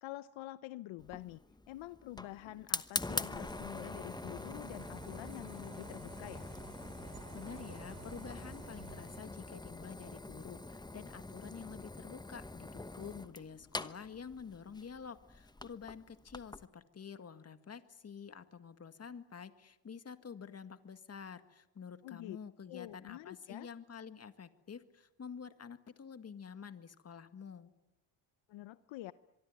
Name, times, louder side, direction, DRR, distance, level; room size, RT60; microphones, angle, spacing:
voice 1, 0.0-1.4 1.7-6.5 22.0-22.4 22.7-23.7 28.5-29.1, left 16 dB, 70° left, 14 dB, 0.9 m, -47 dB
Fire, 1.0-16.7, left 2 dB, 10° left, 1.0 m, -44 dB
sound 1, 3.4-9.2, right 9 dB, 85° right, 3.5 m, -54 dB
voice 2, 7.3-27.7, left 6 dB, 30° left, 10 dB, 1.9 m, -49 dB
24.0 x 24.0 x 9.6 m, 0.89 s
cardioid pair, 100°, 47 cm